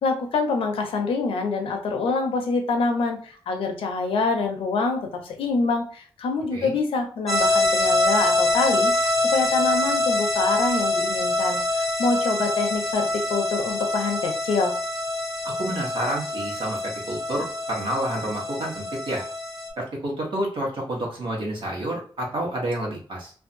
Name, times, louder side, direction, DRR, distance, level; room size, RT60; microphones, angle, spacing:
voice 1, 0.0-14.7, left 4 dB, 85° left, 4 dB, 0.6 m, -26 dB
sound 1, 7.3-19.7, left 2 dB, 5° left, 0.8 m, -25 dB
voice 2, 15.4-19.2 19.8-23.3, right 1 dB, 70° right, -2 dB, 1.2 m, -29 dB
2.6 x 2.3 x 2.6 m, 0.43 s
cardioid pair, 100°, 9 cm